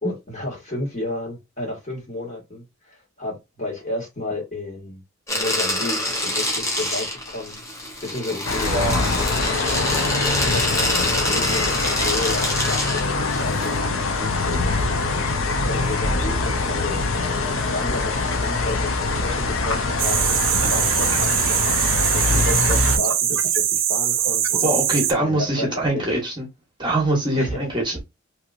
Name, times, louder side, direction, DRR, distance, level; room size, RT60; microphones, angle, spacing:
voice 1, 0.0-5.0 5.3-7.6 8.0-9.0 9.7-10.1 10.3-14.8 15.2-17.1 17.4-24.7 25.2-26.2 27.3-27.8, left 2 dB, 35° left, 1.6 m, -32 dB
sound 1, 5.3-13.8, left 1 dB, 15° left, 0.8 m, -26 dB
sound 2, 8.4-23.0, left 3 dB, 80° left, 0.6 m, -23 dB
voice 2, 8.6-9.1 24.6-26.5 26.8-28.0, right 1 dB, 20° right, 1.1 m, -23 dB
sound 3, 20.0-25.1, right 10 dB, 70° right, 0.6 m, -22 dB
3.0 x 2.9 x 2.5 m
head